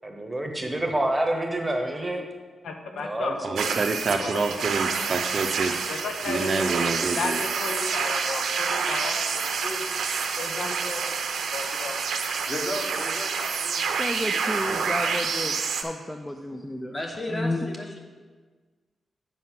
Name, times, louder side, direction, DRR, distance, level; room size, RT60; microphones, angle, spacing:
voice 1, 0.0-2.2 2.9-3.8, right 1 dB, 10° right, 2 dB, 1.0 m, -28 dB
voice 2, 2.6-3.3 4.2-4.6 5.9-6.7 7.1-9.8 10.4-11.0 11.5-12.2, left 3 dB, 80° left, 4 dB, 0.9 m, -33 dB
voice 3, 3.4-5.7 6.3-7.4, right 3 dB, 45° right, 6 dB, 0.6 m, -27 dB
sound 1, 3.6-15.8, right 5 dB, 85° right, 0.7 m, -28 dB
voice 4, 12.5-13.8 14.2-15.5 16.9-18.0, left 1 dB, 25° left, 1 dB, 1.3 m, -35 dB
voice 5, 14.0-15.5 15.8-16.9 17.3-17.7, left 1 dB, 10° left, 4 dB, 0.4 m, -31 dB
7.4 x 5.3 x 5.9 m, 1.4 s
wide cardioid pair, 140°, 0 cm